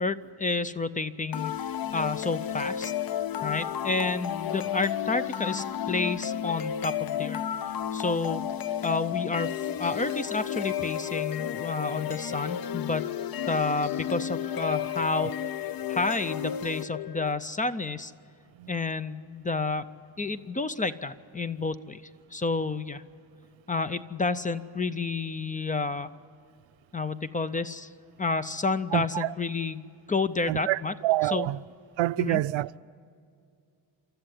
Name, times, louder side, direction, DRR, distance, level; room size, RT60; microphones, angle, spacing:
voice 1, 0.0-2.9 3.4-7.4 7.9-8.4 8.8-13.1 13.5-18.1 18.7-19.9 20.2-22.0 22.3-23.0 23.7-26.1 26.9-27.9 28.2-30.9 31.3-31.5 32.2-32.4, left 3 dB, 20° left, 0.4 m, -30 dB
sound 1, 1.3-17.3, left 9 dB, 55° left, 0.7 m, -32 dB
voice 2, 28.9-29.3 30.5-31.6 32.0-32.8, right 16 dB, 85° right, 0.6 m, -27 dB
28.0 x 13.5 x 9.9 m
wide cardioid pair, 160°, 44 cm